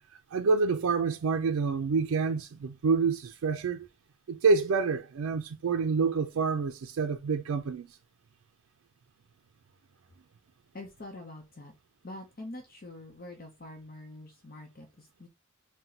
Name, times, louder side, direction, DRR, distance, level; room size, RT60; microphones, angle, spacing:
voice 1, 0.3-3.9 4.3-7.9, right 4 dB, 85° right, 0.4 m, -27 dB
voice 2, 10.7-11.7 12.0-15.3, left 2 dB, 45° left, 0.7 m, -45 dB
4.0 x 2.2 x 4.3 m
head